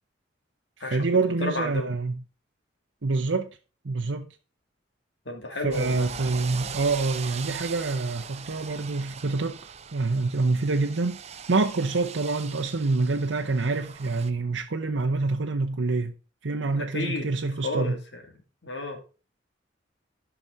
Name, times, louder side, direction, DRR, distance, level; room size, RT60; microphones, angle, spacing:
voice 1, 0.8-2.2 3.0-3.5 3.8-4.3 5.6-11.2 11.5-16.1 16.4-18.0, right 3 dB, 85° right, 0.8 m, -26 dB
voice 2, 1.4-1.9 5.3-6.1 16.7-17.3 17.6-18.2 18.6-19.0, left 2 dB, 65° left, 2.4 m, -31 dB
sound 1, 5.7-14.3, right 7 dB, 35° right, 0.6 m, -40 dB
11.0 x 6.0 x 3.9 m
head